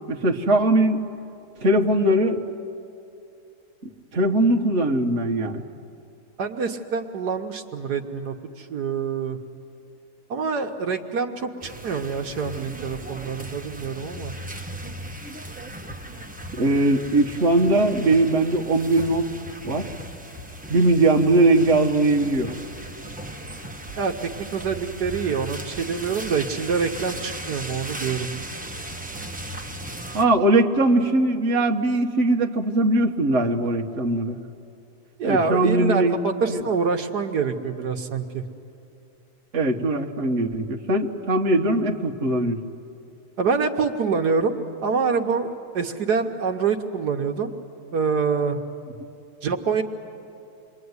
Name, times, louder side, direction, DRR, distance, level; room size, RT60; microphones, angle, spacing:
voice 1, 0.1-1.0 1.6-2.4 4.1-5.6 16.5-19.3 19.6-19.9 20.7-22.5 30.1-34.4 35.2-36.2 36.5-36.6 39.5-42.6, right 2 dB, 45° right, 1 dB, 1.5 m, -20 dB
voice 2, 6.4-9.4 10.3-14.3 24.0-28.3 35.2-38.4 43.4-47.5 47.9-48.6 49.4-49.8, right 5 dB, 75° right, 4 dB, 1.6 m, -26 dB
sound 1, 11.6-30.3, right 1 dB, 5° right, 1.0 m, -37 dB
27.5 x 22.5 x 9.6 m, 2.6 s
omnidirectional pair, 1.8 m